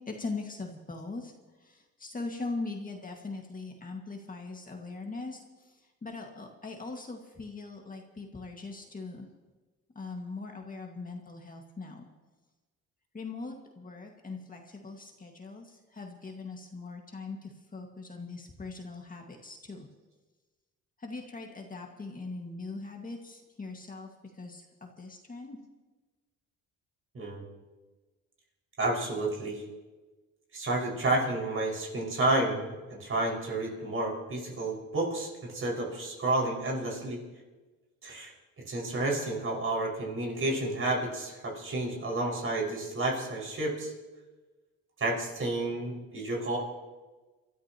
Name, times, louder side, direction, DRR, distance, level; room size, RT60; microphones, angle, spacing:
voice 1, 0.1-1.3 1.6-9.3 10.0-12.1 13.1-19.9 21.0-24.1 24.3-25.6, left 3 dB, 30° left, 2 dB, 1.9 m, -41 dB
voice 2, 28.8-29.6 30.5-37.2 38.0-38.3 38.7-43.9 45.0-46.6, right 2 dB, 45° right, -1 dB, 5.6 m, -30 dB
28.5 x 13.0 x 3.0 m, 1.2 s
cardioid pair, 90°, 30 cm